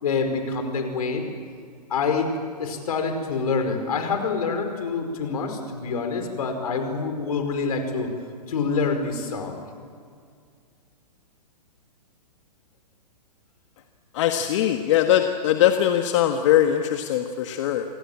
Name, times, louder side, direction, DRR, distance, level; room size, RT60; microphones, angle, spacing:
voice 1, 0.0-1.3 1.9-8.1 8.5-9.6, left 4 dB, 65° left, 6 dB, 5.1 m, -26 dB
voice 2, 14.1-17.8, left 11 dB, 45° left, 6 dB, 1.5 m, -21 dB
26.5 x 18.5 x 8.7 m, 2.1 s
hypercardioid pair, 125°, 21 cm